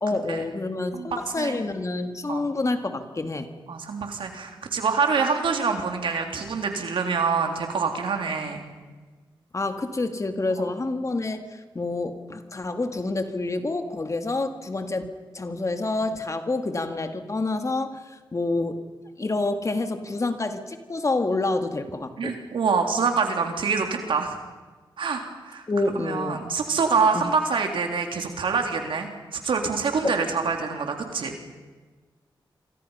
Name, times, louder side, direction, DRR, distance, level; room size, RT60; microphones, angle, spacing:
voice 1, 0.0-3.5 9.5-18.8 19.2-22.4 25.7-26.4 27.1-27.3 30.0-30.1, left 2 dB, 35° left, 7 dB, 2.2 m, -28 dB
voice 2, 3.7-8.6 22.2-24.4 25.0-25.7 26.0-31.4, right 5 dB, 80° right, 4 dB, 3.4 m, -26 dB
27.5 x 24.5 x 5.7 m, 1.3 s
cardioid pair, 65°, 9 cm